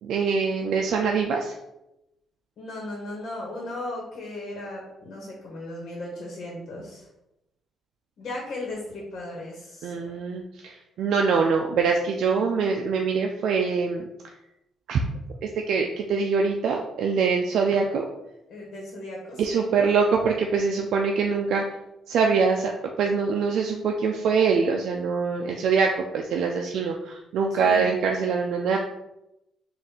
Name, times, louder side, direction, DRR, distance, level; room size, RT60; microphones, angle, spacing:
voice 1, 0.0-1.5 9.8-14.0 14.9-15.0 15.4-18.0 19.4-21.6 22.1-22.7 23.0-28.8, right 5 dB, 75° right, 2 dB, 0.4 m, -24 dB
voice 2, 2.6-7.1 8.2-10.2 18.5-19.6 27.5-27.9, left 2 dB, 65° left, -2 dB, 1.2 m, -36 dB
3.6 x 2.5 x 4.1 m, 0.90 s
cardioid pair, 90°, 0 cm